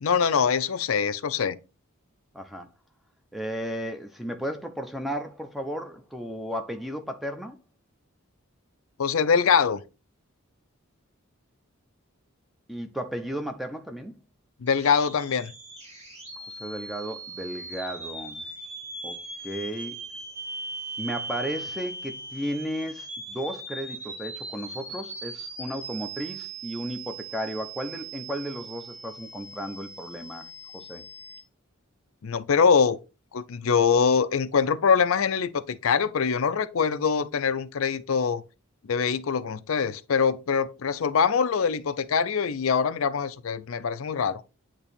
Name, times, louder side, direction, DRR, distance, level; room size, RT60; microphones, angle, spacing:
voice 1, 0.0-1.6 9.0-9.8 14.6-15.5 32.2-33.0 33.3-38.4 38.9-44.4, left 6 dB, 70° left, 0.5 m, -23 dB
voice 2, 2.3-2.7 3.3-7.6 12.7-14.2 16.4-18.4 19.0-20.0 21.0-30.5 30.7-31.0, equal, ahead, 0.6 m, -34 dB
sound 1, 14.7-31.4, right 2 dB, 30° right, 2.3 m, -39 dB
8.7 x 3.0 x 4.2 m
head